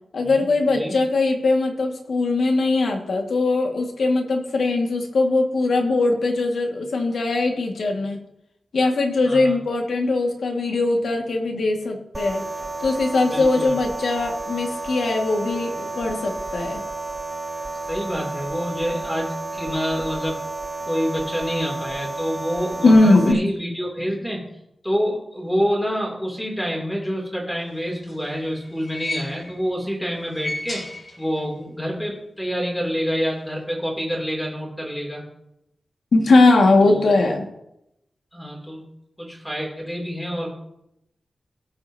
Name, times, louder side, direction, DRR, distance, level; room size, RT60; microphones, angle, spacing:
voice 1, 0.1-8.2 8.7-12.4 12.8-16.8 22.8-23.4 36.1-37.5, left 2 dB, 80° left, 2 dB, 1.7 m, -20 dB
voice 2, 9.2-9.6 13.2-13.8 17.9-20.4 20.9-24.5 24.8-30.8 31.2-35.2 36.8-37.1 38.3-38.8 39.2-40.5, equal, 5° left, -1 dB, 2.8 m, -27 dB
sound 1, 12.1-23.3, right 3 dB, 20° right, 0.5 m, -32 dB
sound 2, 27.8-29.7 30.2-31.6 31.9-32.0 33.1-33.2, left 2 dB, 40° left, 3.2 m, -34 dB
17.5 x 7.7 x 2.7 m, 0.82 s
wide cardioid pair, 155°, 0 cm